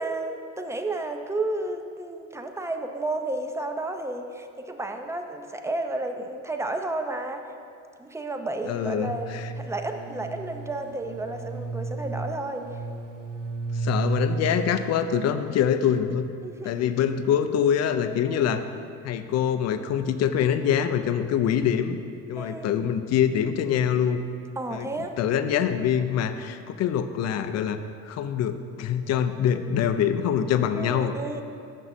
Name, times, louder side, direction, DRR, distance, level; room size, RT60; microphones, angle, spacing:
voice 1, 0.0-7.4 8.0-12.7 16.4-16.7 18.3-18.5 22.4-22.7 24.6-25.2 30.8-31.4, right 2 dB, 10° right, 5 dB, 0.5 m, -32 dB
voice 2, 8.6-9.5 13.7-16.3 16.6-18.6 19.0-22.0 22.3-24.2 24.7-24.9 25.2-27.8 28.0-31.1, left 8 dB, 55° left, 10 dB, 0.5 m, -24 dB
sound 1, 9.0-15.0, right 3 dB, 45° right, 0.6 m, -33 dB
6.1 x 5.8 x 4.2 m, 2.4 s
supercardioid pair, 75°, 32 cm